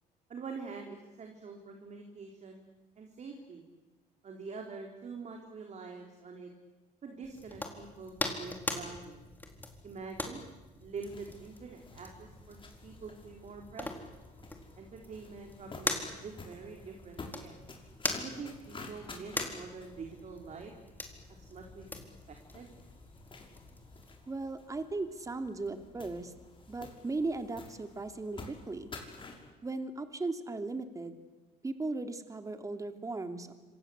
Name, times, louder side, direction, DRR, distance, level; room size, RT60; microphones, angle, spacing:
voice 1, 0.3-2.7 3.0-3.6 4.2-6.5 7.0-9.2 9.8-10.4 10.8-14.1 14.8-17.6 18.2-20.7 21.3-22.0 22.5-22.7, right 4 dB, 45° right, 2 dB, 4.4 m, -45 dB
sound 1, 7.2-24.2, left 2 dB, 10° left, 4.2 m, -42 dB
sound 2, 11.0-29.5, left 3 dB, 30° left, 5.8 m, -51 dB
voice 2, 24.3-26.3 26.7-28.9 29.6-31.2 31.6-33.5, right 3 dB, 20° right, 7 dB, 2.7 m, -37 dB
27.5 x 26.5 x 8.2 m, 1.1 s
cardioid pair, 110°, 17 cm